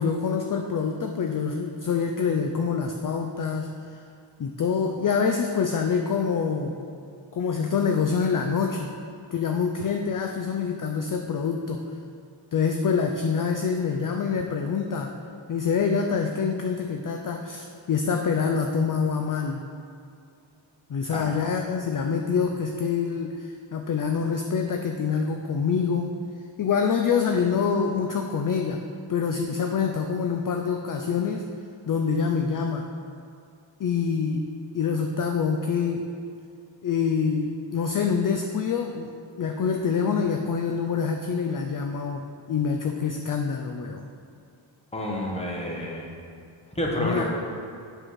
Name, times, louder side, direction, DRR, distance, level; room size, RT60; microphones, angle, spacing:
voice 1, 0.0-3.7 4.4-6.8 7.3-8.9 9.3-11.8 12.5-15.1 15.5-19.6 20.9-26.2 26.6-28.8 29.1-31.5 31.9-32.9 33.8-34.5 34.7-36.1 36.8-39.1 39.4-44.0 47.0-47.2, left 6 dB, 45° left, 4 dB, 0.4 m, -26 dB
voice 2, 44.9-46.1 46.7-47.2, left 1 dB, 15° left, -2 dB, 1.1 m, -29 dB
7.7 x 4.8 x 5.7 m, 2.4 s
wide cardioid pair, 150°, 48 cm